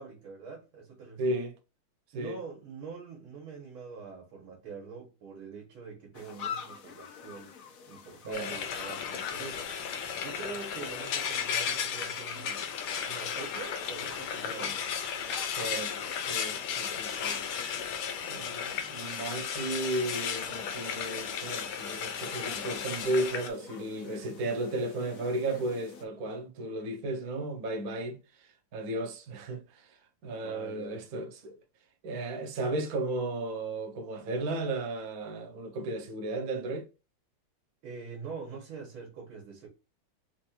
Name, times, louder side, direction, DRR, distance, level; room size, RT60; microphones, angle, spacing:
voice 1, 0.0-1.4 2.1-7.5 7.9-9.8 10.2-12.7 13.0-14.7 30.4-31.0 37.8-39.7, right 5 dB, 75° right, 2.2 m, -44 dB
voice 2, 1.2-1.5 2.1-2.4 8.2-8.5 14.4-14.7 15.5-16.0 16.3-17.4 18.2-28.2 28.7-29.9 30.2-31.6 32.0-36.9, right 2 dB, 50° right, 1.3 m, -34 dB
sound 1, 6.1-26.0, left 7 dB, 55° left, 0.9 m, -48 dB
Frying (food), 8.3-23.5, left 7 dB, 85° left, 1.6 m, -35 dB
4.5 x 2.7 x 4.3 m
omnidirectional pair, 2.3 m